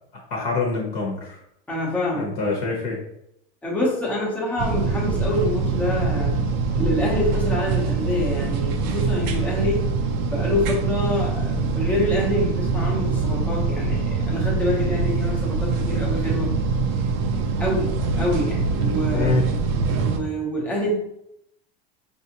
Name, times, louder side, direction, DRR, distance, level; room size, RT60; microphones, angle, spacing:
voice 1, 0.3-1.4 2.1-3.0 19.1-19.4, left 4 dB, 45° left, -2 dB, 1.0 m, -25 dB
voice 2, 1.7-2.3 3.6-6.3 6.7-9.9 10.3-16.5 17.6-19.6 20.0-20.9, left 1 dB, 5° left, -5 dB, 0.8 m, -26 dB
sound 1, 4.6-20.2, right 4 dB, 45° right, 0.5 m, -24 dB
5.4 x 2.6 x 2.8 m, 0.78 s
supercardioid pair, 175°, 33 cm